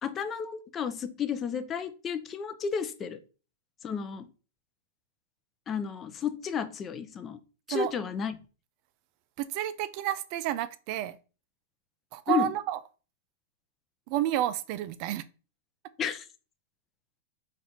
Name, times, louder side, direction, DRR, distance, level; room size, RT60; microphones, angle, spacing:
voice 1, 0.0-3.2 3.8-4.3 5.7-7.4 7.7-8.4 12.3-12.5 16.0-16.3, left 7 dB, 25° left, 0.6 m, -32 dB
voice 2, 9.4-11.2 12.1-12.8 14.1-15.2, right 12 dB, 50° right, 0.3 m, -30 dB
4.2 x 2.5 x 4.1 m
hypercardioid pair, 120°, 0 cm